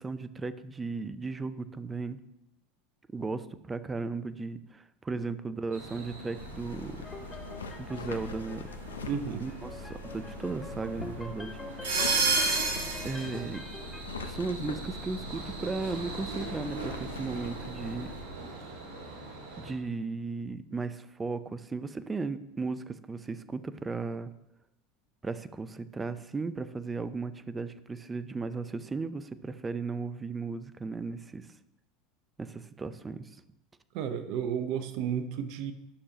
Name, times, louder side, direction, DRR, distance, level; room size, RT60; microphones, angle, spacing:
voice 1, 0.0-2.2 3.1-7.0 7.8-8.7 9.4-11.6 13.0-13.6 14.2-18.1 19.6-24.3 25.2-31.5 32.4-33.2, right 4 dB, 20° right, 13 dB, 0.6 m, -36 dB
sound 1, 5.7-19.7, right 3 dB, 75° right, 2.2 m, -36 dB
sound 2, 6.3-18.2, left 4 dB, 85° left, 0.7 m, -43 dB
sound 3, 7.0-14.0, left 2 dB, 15° left, 0.9 m, -45 dB
voice 2, 9.0-9.4 33.9-35.7, right 8 dB, 60° right, 9 dB, 0.8 m, -32 dB
11.5 x 6.4 x 3.0 m, 0.88 s
hypercardioid pair, 85°, 0 cm